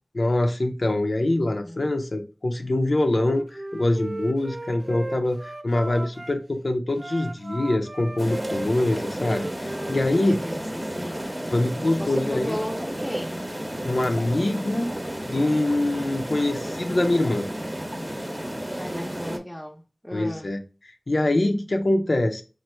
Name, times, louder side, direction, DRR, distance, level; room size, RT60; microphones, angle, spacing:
voice 1, 0.1-10.4 11.5-12.6 13.8-14.9 15.3-17.5 20.1-20.6 21.1-22.4, left 1 dB, 75° left, 0.5 m, -24 dB
voice 2, 1.6-1.9 10.1-11.3 12.0-13.4 18.7-20.5, equal, 15° left, 0.7 m, -35 dB
Wind instrument woodwind instrument, 3.1-6.4 6.9-10.5, right 2 dB, 60° right, 0.4 m, -36 dB
sound 1, 8.2-19.4, equal, 20° right, 0.8 m, -32 dB
3.1 x 2.5 x 4.3 m
wide cardioid pair, 40°, 0 cm